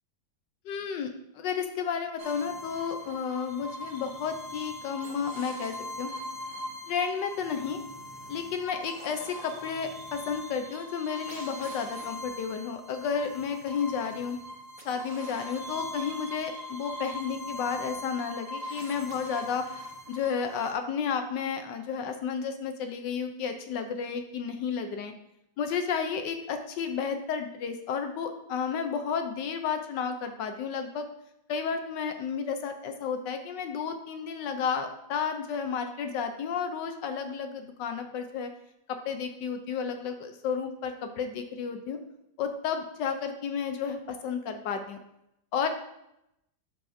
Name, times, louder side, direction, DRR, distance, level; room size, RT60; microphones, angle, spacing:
voice 1, 0.6-1.1 1.3-6.1 6.9-7.8 8.3-14.4 14.8-19.6 20.1-25.1 25.6-31.1 31.5-38.5 38.9-42.0 42.4-45.0 45.5-45.7, left 6 dB, 70° left, 7 dB, 1.2 m, -32 dB
sound 1, 2.2-20.7, left 1 dB, 60° right, 1.7 m, -41 dB
11.5 x 4.9 x 2.6 m, 0.83 s
omnidirectional pair, 2.1 m